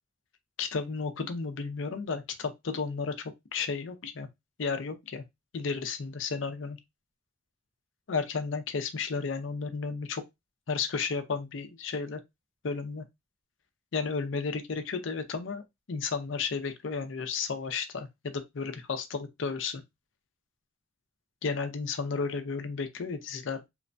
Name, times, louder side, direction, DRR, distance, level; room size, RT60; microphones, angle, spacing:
voice 1, 0.6-3.1 3.5-4.3 4.6-5.2 5.5-6.8 8.1-10.2 10.7-12.2 12.6-13.0 13.9-19.8 21.4-23.7, left 5 dB, 75° left, 0.5 m, -33 dB
3.1 x 2.1 x 2.5 m
head